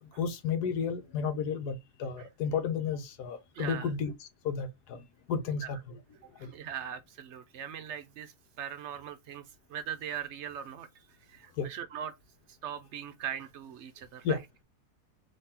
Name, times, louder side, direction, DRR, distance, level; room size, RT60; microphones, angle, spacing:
voice 1, 0.0-6.0 6.4-6.5 11.6-11.7 14.2-14.4, left 6 dB, 80° left, 1.4 m, -33 dB
voice 2, 3.5-3.9 5.6-5.7 6.4-12.1 12.5-14.4, right 9 dB, 65° right, 0.7 m, -40 dB
3.7 x 3.1 x 4.2 m
omnidirectional pair, 1.7 m